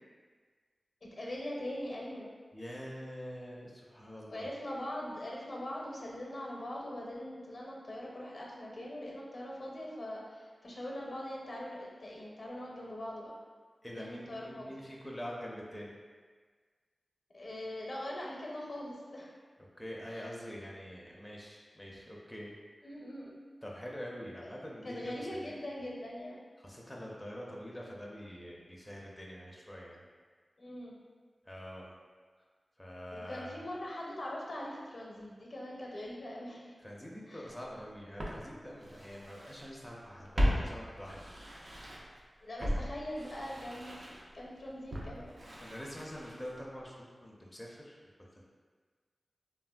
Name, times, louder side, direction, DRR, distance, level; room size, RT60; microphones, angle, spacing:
voice 1, 1.1-2.3 4.3-13.3 13.9-14.7 17.3-19.3 20.1-20.2 22.8-23.4 24.4-24.6 24.8-26.4 30.6-31.0 33.1-36.7 37.3-37.5 42.4-44.0 44.3-45.3, left 1 dB, 60° left, -3 dB, 0.6 m, -42 dB
voice 2, 2.5-4.5 13.8-15.9 19.8-22.5 23.6-25.5 26.6-30.0 31.4-31.9 32.8-33.5 36.8-41.2 42.6-42.7 45.6-48.4, equal, 10° left, -3 dB, 0.4 m, -45 dB
Walk footsteps, 37.5-37.6 38.2-39.7 39.9-42.2 42.6-46.7 46.9-47.0, equal, 60° right, 0.4 m, -37 dB
3.0 x 2.4 x 2.2 m, 1.5 s
wide cardioid pair, 60°, 0 cm